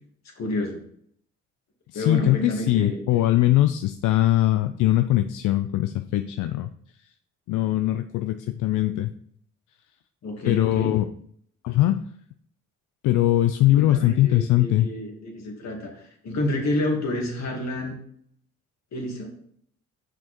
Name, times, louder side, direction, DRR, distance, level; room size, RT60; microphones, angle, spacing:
voice 1, 0.4-0.8 1.9-3.2 10.2-11.0 13.7-18.0 18.9-19.4, left 1 dB, 60° left, 1 dB, 2.5 m, -29 dB
voice 2, 1.9-6.7 7.5-9.1 10.5-11.1 11.6-12.0 13.0-14.9, left 14 dB, 85° left, 9 dB, 0.5 m, -21 dB
6.4 x 6.1 x 4.5 m, 0.65 s
cardioid pair, 90°, 30 cm